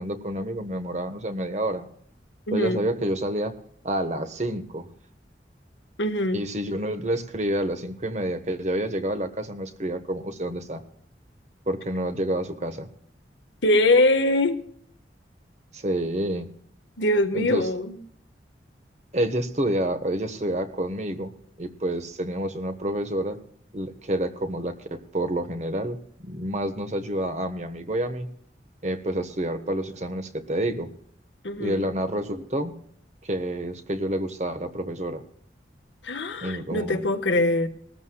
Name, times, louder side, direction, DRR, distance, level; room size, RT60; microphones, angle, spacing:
voice 1, 0.0-1.9 2.5-3.5 3.8-4.9 6.3-10.8 11.7-12.9 15.7-16.5 17.3-17.7 19.1-21.3 21.6-23.4 23.7-28.3 28.8-30.9 31.6-32.8 33.2-35.2 36.4-37.0, right 1 dB, 40° right, 8 dB, 1.3 m, -28 dB
voice 2, 2.5-2.8 6.0-6.4 13.6-14.6 17.0-18.0 31.4-31.8 36.0-37.7, left 1 dB, 90° left, 6 dB, 1.5 m, -22 dB
20.5 x 14.0 x 2.4 m, 0.64 s
head